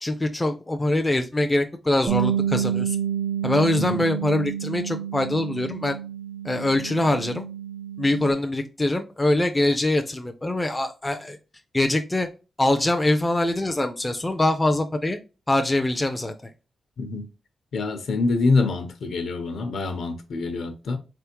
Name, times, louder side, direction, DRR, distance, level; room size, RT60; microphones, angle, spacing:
voice 1, 0.0-3.0 3.4-6.0 6.4-7.5 8.0-11.4 11.7-12.3 12.6-15.2 15.5-16.3, left 1 dB, 10° left, 0.4 m, -23 dB
Bass guitar, 2.1-8.3, right 9 dB, 45° right, 0.5 m, -29 dB
voice 2, 17.0-17.3 17.7-21.0, left 3 dB, 70° left, 0.8 m, -25 dB
4.2 x 3.4 x 2.9 m
wide cardioid pair, 175°, 0 cm